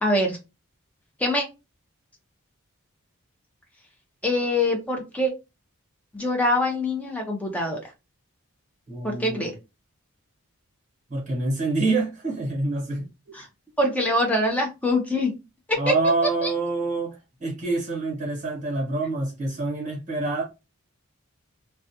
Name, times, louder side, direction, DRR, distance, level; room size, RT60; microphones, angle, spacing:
voice 1, 0.0-0.4 1.2-1.4 4.2-5.3 6.1-7.8 9.0-9.5 13.3-13.5 13.8-15.3 15.7-15.8 16.4-16.5, left 1 dB, 5° left, 0.5 m, -24 dB
voice 2, 8.9-9.5 11.1-13.0 13.3-13.4 15.7-20.4, right 3 dB, 35° right, 1.1 m, -26 dB
2.3 x 2.1 x 2.7 m
head